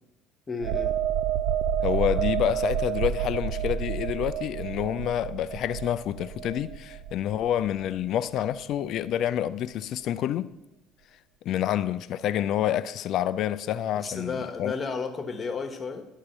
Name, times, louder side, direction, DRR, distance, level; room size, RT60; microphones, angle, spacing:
voice 1, 0.5-0.9 14.0-16.0, left 4 dB, 30° left, 1.2 m, -32 dB
sound 1, 0.6-8.1 8.4-8.6, right 9 dB, 60° right, 0.4 m, -29 dB
voice 2, 1.8-10.5 11.4-14.7, left 11 dB, 55° left, 0.4 m, -28 dB
11.0 x 3.6 x 6.7 m
figure-of-eight pair, 60°, 0 cm